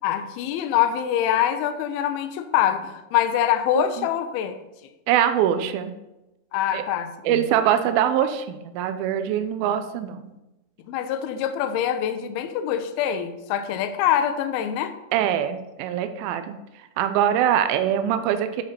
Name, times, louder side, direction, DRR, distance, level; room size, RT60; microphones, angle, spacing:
voice 1, 0.0-4.6 6.5-7.4 10.9-14.9, left 10 dB, 80° left, 9 dB, 2.5 m, -24 dB
voice 2, 3.7-4.1 5.1-6.0 6.7-6.8 7.2-10.2 15.1-16.6 17.0-18.6, right 10 dB, 80° right, 9 dB, 2.3 m, -23 dB
11.0 x 5.1 x 4.2 m, 0.97 s
omnidirectional pair, 4.4 m